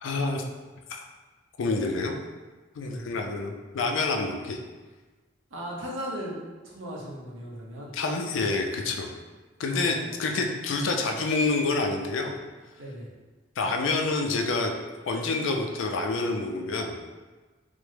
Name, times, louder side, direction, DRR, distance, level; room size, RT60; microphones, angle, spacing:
voice 1, 0.0-0.4 0.9-1.0 1.6-2.1 2.8-4.6 7.9-9.1 9.6-12.4 13.6-14.7 15.1-17.0, left 3 dB, 75° left, 3 dB, 0.4 m, -27 dB
voice 2, 2.8-3.1 5.5-6.4 6.6-7.9 9.7-10.1 12.8-13.1, equal, 80° right, -4 dB, 0.8 m, -37 dB
3.4 x 2.1 x 3.2 m, 1.3 s
head